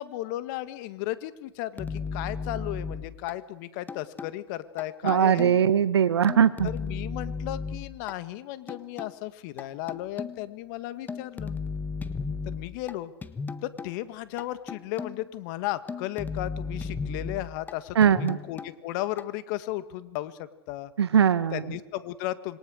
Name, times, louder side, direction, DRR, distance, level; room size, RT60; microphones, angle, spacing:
voice 1, 0.0-5.6 6.6-11.6 12.4-13.1 13.6-20.9 21.5-22.6, left 15 dB, 50° left, 13 dB, 1.8 m, -35 dB
sound 1, 1.8-3.3 3.9-4.4 4.8-5.7 6.3-8.1 8.7-9.1 9.6-10.5 11.1-12.9 13.2-13.9 14.4-15.3 15.9-17.7 18.0-18.7 19.2-19.3, left 4 dB, 15° left, 1.3 m, -35 dB
voice 2, 5.0-6.7 17.9-18.4 21.0-21.6, right 8 dB, 85° right, 14 dB, 1.3 m, -21 dB
26.5 x 23.0 x 6.5 m, 1.0 s
hypercardioid pair, 115°, 13 cm